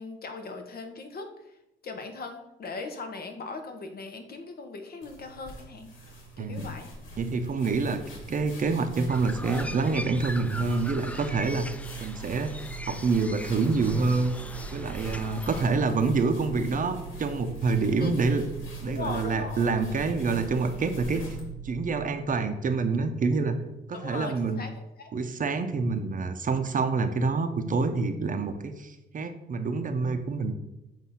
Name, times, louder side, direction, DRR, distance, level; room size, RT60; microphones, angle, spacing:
voice 1, 0.0-1.5 1.8-5.9 6.4-6.9 18.0-18.2 18.9-19.7 23.9-25.1, left 3 dB, 50° left, 6 dB, 1.0 m, -39 dB
sound 1, 5.0-21.5, equal, 80° left, 1.6 m, -45 dB
voice 2, 7.2-8.0 8.3-11.7 12.0-12.6 12.9-14.3 14.7-18.4 18.8-21.2 21.6-23.6 23.9-24.6 25.1-30.5, right 4 dB, 40° right, 8 dB, 0.7 m, -27 dB
sound 2, 9.1-15.6, left 1 dB, 5° left, 0.3 m, -41 dB
sound 3, 9.1-22.1, right 7 dB, 90° right, 0.5 m, -41 dB
7.4 x 2.7 x 5.6 m, 0.91 s
cardioid pair, 90°, 20 cm